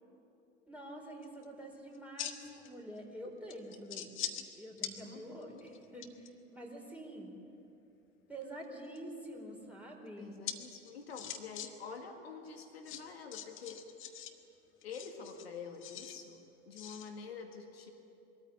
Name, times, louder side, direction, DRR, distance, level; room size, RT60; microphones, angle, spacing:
voice 1, 0.7-4.2 4.6-7.3 8.3-10.3, right 1 dB, 5° right, -1 dB, 4.3 m, -47 dB
sound 1, 1.2-1.4 1.9-2.7 3.0-3.1 3.5-4.5 4.8-4.9 5.4-6.3 8.4-9.0 10.5-10.6 10.8-11.7 11.9-12.0 12.8-14.3 14.8-16.2 16.8-17.1, left 10 dB, 40° left, 1.6 m, -42 dB
voice 2, 5.0-5.7 10.2-13.9 14.8-17.9, left 5 dB, 75° left, 4 dB, 2.0 m, -47 dB
22.5 x 14.0 x 9.8 m, 2.7 s
figure-of-eight pair, 70°, 31 cm